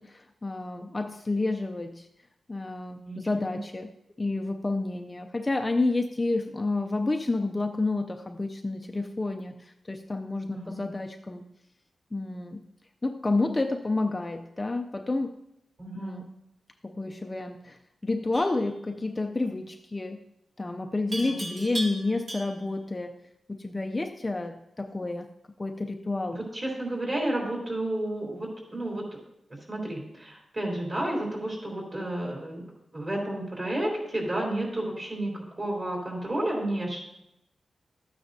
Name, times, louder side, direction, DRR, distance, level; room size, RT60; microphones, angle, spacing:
voice 1, 0.0-2.1 2.5-3.9 4.2-11.4 12.1-12.6 13.0-15.4 16.0-16.3 16.8-20.2 20.6-23.2 23.5-25.3 25.6-26.4, left 2 dB, 20° left, 5 dB, 0.5 m, -30 dB
voice 2, 10.5-10.8 15.8-16.2 21.2-21.3 26.3-29.1 29.5-32.6 32.9-37.0, right 1 dB, 35° right, -2 dB, 3.4 m, -31 dB
Livestock farm animals working animals, 18.3-18.7 21.1-22.8, right 1 dB, 55° right, 2.3 m, -36 dB
13.0 x 9.3 x 2.7 m, 0.83 s
wide cardioid pair, 110°, 0 cm